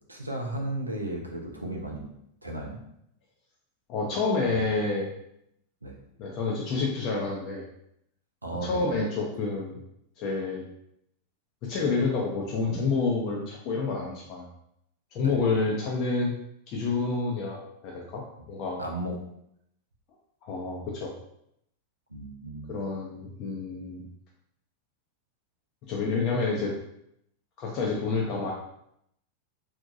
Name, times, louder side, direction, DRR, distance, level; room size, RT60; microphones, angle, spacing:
voice 1, 0.1-2.1 2.4-2.8 4.5-4.7 5.8-6.0 8.4-8.8 15.2-15.4 18.8-19.2 22.1-22.7, right 1 dB, 80° right, 1 dB, 0.5 m, -34 dB
voice 2, 3.9-5.1 6.2-7.6 8.5-9.8 10.2-10.7 11.6-14.5 15.1-16.3 16.7-18.8 20.4-21.1 22.7-24.0 25.9-26.8 27.6-28.5, left 4 dB, 40° left, -2 dB, 0.4 m, -28 dB
2.7 x 2.1 x 2.4 m, 0.75 s
figure-of-eight pair, 90°, 0 cm